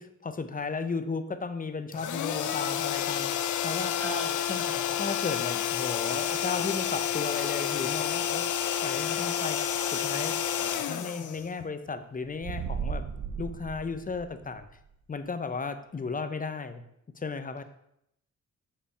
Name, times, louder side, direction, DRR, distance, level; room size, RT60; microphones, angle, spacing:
voice 1, 0.0-4.0 4.5-4.6 5.0-8.5 8.8-9.6 9.9-13.1 13.4-14.7 15.1-16.8 17.1-17.6, left 4 dB, 30° left, 10 dB, 0.6 m, -35 dB
sound 1, 1.9-11.9, left 9 dB, 80° left, 0.6 m, -30 dB
voice 2, 3.9-4.9, right 1 dB, 35° right, -2 dB, 2.7 m, -38 dB
sound 2, 12.2-14.7, right 6 dB, 75° right, 0.7 m, -35 dB
6.7 x 5.6 x 5.5 m, 0.78 s
wide cardioid pair, 145°, 30 cm